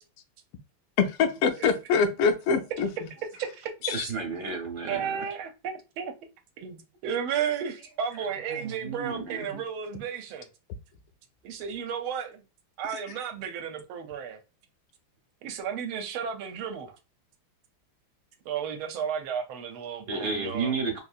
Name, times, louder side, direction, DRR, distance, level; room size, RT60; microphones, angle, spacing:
voice 1, 1.1-2.9 3.8-4.0, left 5 dB, 85° left, 1.5 m, -24 dB
voice 2, 3.4-3.7 4.9-6.1 6.6-10.5 11.4-12.4 12.8-14.4 15.4-17.0 18.4-20.7, right 7 dB, 80° right, 1.4 m, -33 dB
voice 3, 3.9-5.2 8.5-9.5 20.1-21.0, right 4 dB, 60° right, 1.3 m, -32 dB
3.9 x 2.6 x 2.3 m
omnidirectional pair, 2.4 m